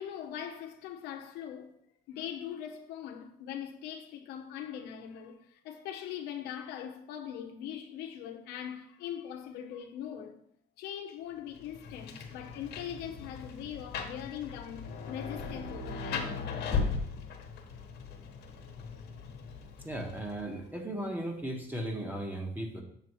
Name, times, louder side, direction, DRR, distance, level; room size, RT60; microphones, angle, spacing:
voice 1, 0.0-1.7 2.1-10.4 10.8-16.5, left 9 dB, 90° left, 0.9 m, -41 dB
Rain, 11.5-20.6, left 4 dB, 70° left, 1.3 m, -38 dB
voice 2, 19.8-22.8, right 1 dB, 10° right, 1.5 m, -36 dB
7.2 x 6.9 x 3.1 m
cardioid pair, 110°, 17 cm